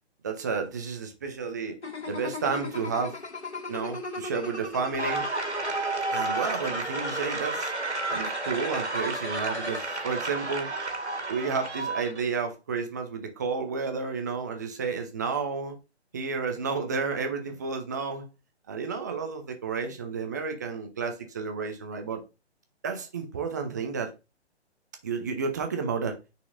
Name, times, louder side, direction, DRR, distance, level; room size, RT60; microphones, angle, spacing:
voice 1, 0.2-1.8 2.1-3.2 3.7-5.3 6.1-7.7 8.1-10.7 11.3-15.7 16.1-18.3 18.7-22.2 22.8-24.1 25.0-26.2, right 5 dB, 15° right, 0.5 m, -31 dB
sound 1, 1.8-9.8, left 2 dB, 80° left, 1.6 m, -38 dB
sound 2, 5.0-12.2, right 3 dB, 80° right, 1.7 m, -31 dB
9.6 x 4.2 x 2.5 m
figure-of-eight pair, 140°, 34 cm